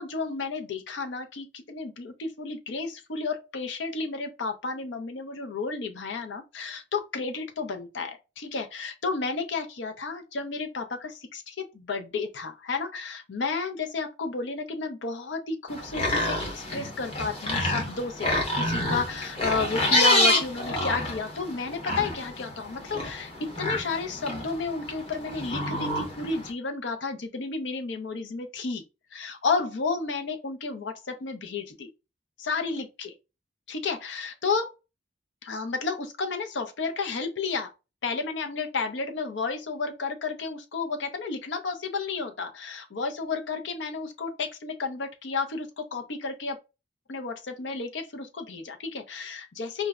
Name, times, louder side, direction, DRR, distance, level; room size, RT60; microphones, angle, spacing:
voice 1, 0.0-28.8 29.1-31.9 32.4-33.1 33.7-34.7 35.4-37.7 38.0-46.6 47.1-49.9, left 4 dB, 85° left, 0.6 m, -32 dB
sound 1, 15.7-26.5, left 1 dB, 30° left, 0.7 m, -28 dB
4.4 x 2.0 x 2.3 m
head